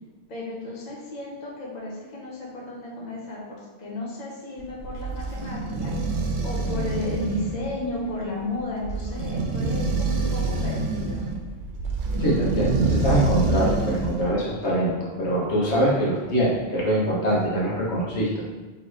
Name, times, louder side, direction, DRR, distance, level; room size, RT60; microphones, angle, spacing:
voice 1, 0.3-5.9 6.4-11.3, left 2 dB, 40° left, -5 dB, 1.0 m, -33 dB
sound 1, 4.6-14.3, right 3 dB, 90° right, 0.9 m, -26 dB
voice 2, 12.2-18.4, equal, 85° left, -5 dB, 1.3 m, -24 dB
4.1 x 3.2 x 3.2 m, 1.2 s
omnidirectional pair, 1.1 m